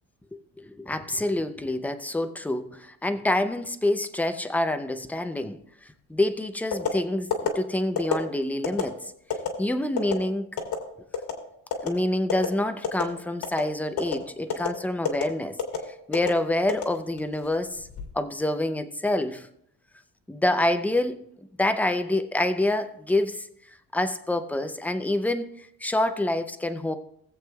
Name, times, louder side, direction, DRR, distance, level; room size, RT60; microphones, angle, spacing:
voice 1, 0.3-9.0 9.6-10.5 11.8-15.6 16.1-17.9 18.1-19.5 20.3-21.2 21.6-23.5 23.9-27.0, left 1 dB, 5° left, 9 dB, 0.4 m, -27 dB
sound 1, 6.7-6.9 7.3-7.5 8.0-8.2 8.6-8.8 9.3-9.5 10.0-10.1 10.6-10.8 11.1-11.4 11.7-11.9 12.3-12.5 12.8-13.1 13.4-13.6 14.0-14.1 14.5-14.7 15.0-15.2 15.6-15.8 16.1-16.3 16.7-17.3 17.8-18.1, left 8 dB, 65° left, 2.3 m, -26 dB
19.0 x 7.8 x 2.3 m, 0.71 s
cardioid pair, 155°, 38 cm